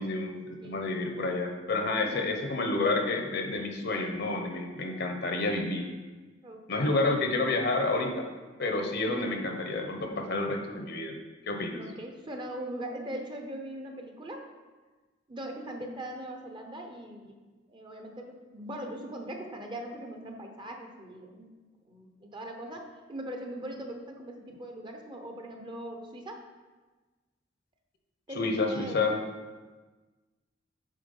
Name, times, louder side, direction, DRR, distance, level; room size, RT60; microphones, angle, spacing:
voice 1, 0.0-5.8 6.7-8.3 8.6-11.2 11.5-11.8 28.3-29.2, left 2 dB, 60° left, 4 dB, 0.9 m, -29 dB
voice 2, 2.0-2.3 6.4-7.0 9.0-9.3 11.7-14.5 15.3-17.4 17.7-21.5 21.9-26.4 28.3-29.1, right 1 dB, 25° right, 3 dB, 0.8 m, -40 dB
7.5 x 4.7 x 5.4 m, 1.3 s
head